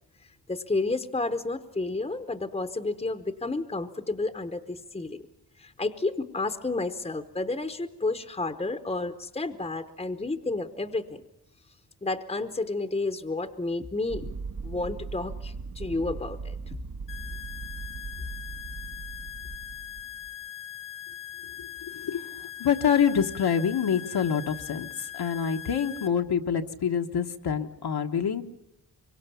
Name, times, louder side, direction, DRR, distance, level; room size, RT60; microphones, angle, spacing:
voice 1, 0.5-5.3 5.6-11.2 12.0-14.3 14.6-16.8, left 3 dB, 15° left, 8 dB, 0.9 m, -31 dB
sound 1, 14.1-20.3, right 4 dB, 45° right, 0.8 m, -39 dB
sound 2, 17.1-26.1, left 12 dB, 50° left, 1.2 m, -41 dB
voice 2, 21.6-22.2 22.6-24.9 25.1-28.4, left 7 dB, 75° left, 4 dB, 1.3 m, -26 dB
25.0 x 23.5 x 7.0 m, 0.83 s
wide cardioid pair, 150°, 39 cm